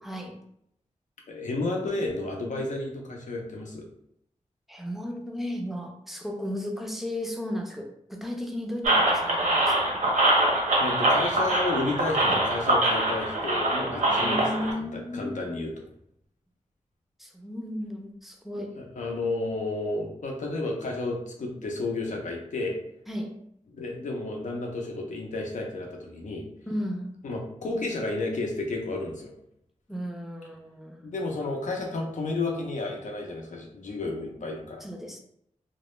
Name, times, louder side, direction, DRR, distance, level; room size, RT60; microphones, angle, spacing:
voice 1, 0.0-0.4 4.7-10.0 14.0-15.6 17.2-18.7 23.1-23.3 26.7-27.2 29.9-31.1 34.8-35.2, equal, ahead, 2 dB, 0.4 m, -35 dB
voice 2, 1.3-3.9 10.8-15.8 18.8-22.8 23.8-26.5 27.2-29.3 31.0-34.8, left 2 dB, 75° left, 0 dB, 0.6 m, -32 dB
sound 1, 8.8-14.7, right 1 dB, 85° right, 0.7 m, -24 dB
2.1 x 2.0 x 3.0 m, 0.73 s
wide cardioid pair, 80°, 13 cm